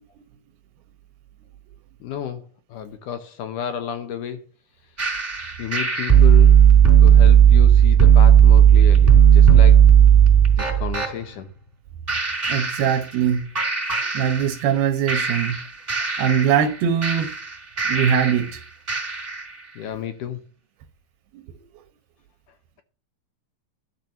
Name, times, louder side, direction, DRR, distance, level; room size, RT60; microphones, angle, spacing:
voice 1, 2.0-2.4 2.7-4.4 5.6-6.6 7.0-9.9 10.6-11.5 19.8-20.4, left 9 dB, 70° left, 2.2 m, -31 dB
sound 1, 5.0-11.1 12.1-13.3 13.6-14.8 15.1-18.5 18.9-19.5, right 8 dB, 15° right, 3.6 m, -15 dB
voice 2, 12.5-13.5 14.1-15.6 16.0-17.3 17.9-18.6 21.3-21.4, right 8 dB, 85° right, 2.9 m, -22 dB
12.5 x 4.6 x 6.7 m
omnidirectional pair, 4.3 m